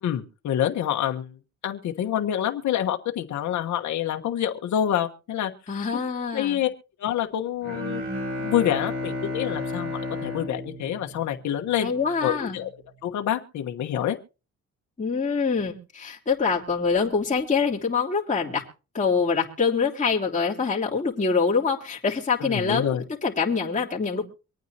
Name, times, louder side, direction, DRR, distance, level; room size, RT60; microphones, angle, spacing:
voice 1, 0.0-1.3 1.6-5.5 5.9-6.0 6.3-6.7 7.0-8.0 8.4-11.9 12.2-12.7 13.0-14.2 22.4-23.0, left 10 dB, 70° left, 4 dB, 1.3 m, -27 dB
voice 2, 5.7-6.6 11.8-12.6 15.0-18.6 18.9-24.3, left 5 dB, 25° left, -4 dB, 3.2 m, -25 dB
Bowed string instrument, 7.6-11.9, left 2 dB, 80° right, 5.4 m, -32 dB
25.0 x 9.2 x 2.9 m, 0.33 s
cardioid pair, 90°, 30 cm